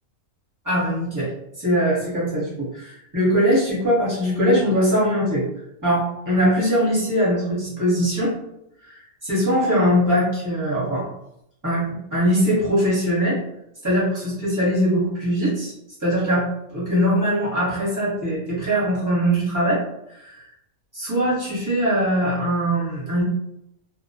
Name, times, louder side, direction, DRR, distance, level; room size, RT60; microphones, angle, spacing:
voice 1, 0.6-1.3 1.6-5.4 5.8-8.3 8.8-11.1 11.6-13.4 13.8-15.7 16.0-19.8 20.1-20.4 20.9-23.2, equal, 15° right, -7 dB, 0.8 m, -21 dB
2.3 x 2.1 x 2.6 m, 0.80 s
omnidirectional pair, 1.5 m